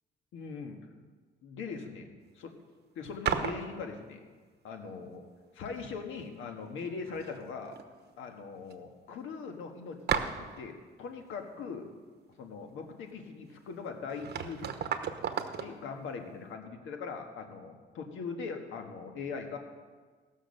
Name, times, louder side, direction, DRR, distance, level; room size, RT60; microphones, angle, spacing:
voice 1, 0.3-0.8 1.4-2.1 2.3-2.5 2.9-4.2 4.6-5.2 5.5-7.8 8.2-11.9 12.4-14.7 15.6-19.6, left 5 dB, 85° left, 4 dB, 1.6 m, -41 dB
sound 1, 3.3-3.7 5.7-5.8 6.1-6.8 7.0-7.8 8.1-8.2 8.7-8.8 10.1-10.6 13.7-13.8 14.1-15.7, right 7 dB, 55° right, 1.0 m, -34 dB
17.0 x 6.4 x 6.5 m, 1.4 s
cardioid pair, 90°, 20 cm